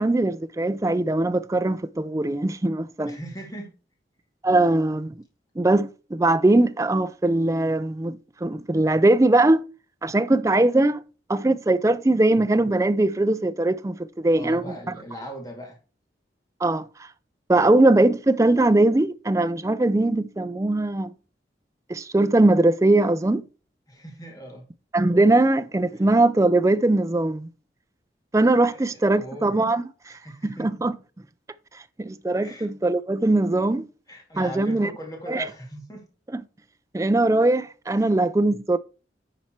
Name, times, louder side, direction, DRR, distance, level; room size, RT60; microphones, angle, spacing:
voice 1, 0.0-3.2 4.4-5.1 5.6-9.6 10.0-11.0 11.3-14.7 16.6-17.1 17.5-21.1 21.9-23.4 24.9-27.5 28.3-30.1 30.4-30.9 32.0-33.9 34.4-34.9 35.3-35.4 36.3-36.4 36.9-38.8, right 2 dB, 15° right, 0.4 m, -21 dB
voice 2, 3.0-3.7 14.3-15.8 23.9-24.6 28.7-29.6 30.1-30.7 32.4-32.7 34.1-36.0 37.9-38.1, equal, 20° left, 2.3 m, -39 dB
10.0 x 4.3 x 4.5 m
head